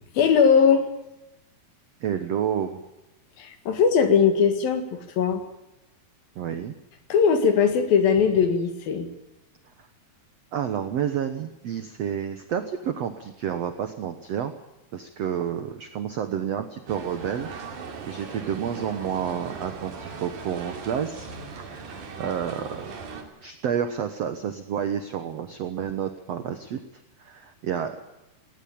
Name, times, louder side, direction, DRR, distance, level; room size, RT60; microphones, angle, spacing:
voice 1, 0.1-0.8 3.4-5.4 7.1-9.1, left 6 dB, 65° left, 8 dB, 3.4 m, -20 dB
voice 2, 2.0-2.8 6.3-6.7 10.5-14.5 14.9-17.5 18.0-21.9 22.2-22.9 23.4-26.8 27.2-28.0, right 8 dB, 85° right, 8 dB, 1.4 m, -30 dB
sound 1, 16.9-23.2, right 5 dB, 55° right, 3.8 m, -38 dB
18.5 x 17.0 x 8.7 m, 0.96 s
omnidirectional pair, 4.7 m